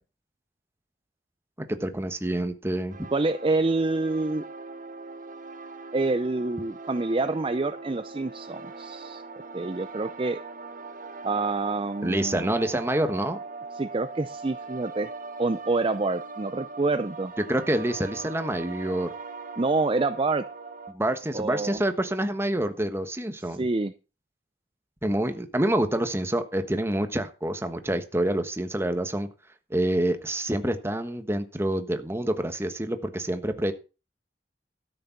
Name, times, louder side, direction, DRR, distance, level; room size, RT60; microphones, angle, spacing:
voice 1, 1.6-2.9 12.0-13.4 17.5-19.1 20.9-23.6 25.0-29.3 29.7-33.7, right 1 dB, 15° right, 8 dB, 1.3 m, -27 dB
sound 1, 2.9-20.9, right 3 dB, 50° right, 1.4 m, -40 dB
voice 2, 3.1-4.4 5.9-9.2 9.5-10.4 11.2-12.5 13.7-15.1 15.4-17.3 19.6-20.4 21.3-21.8 23.5-23.9, right 3 dB, 30° right, 11 dB, 0.5 m, -27 dB
13.0 x 6.8 x 5.9 m, 0.32 s
head